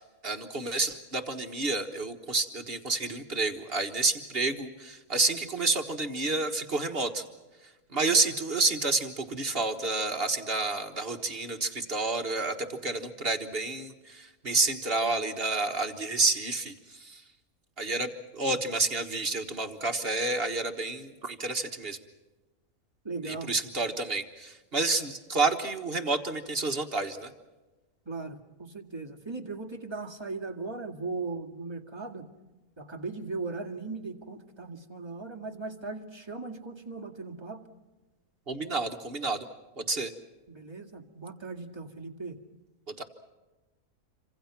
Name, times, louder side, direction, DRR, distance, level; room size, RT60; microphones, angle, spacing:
voice 1, 0.0-7.2 7.9-17.2 17.8-22.0 23.2-27.3 38.5-39.4 39.8-40.1 43.0-43.1, right 3 dB, 45° right, 6 dB, 1.6 m, -29 dB
voice 2, 23.0-23.5 28.1-32.2 32.8-37.6 40.5-42.4, right 3 dB, 20° right, 0 dB, 2.0 m, -38 dB
27.5 x 25.5 x 5.9 m, 1.1 s
omnidirectional pair, 1.5 m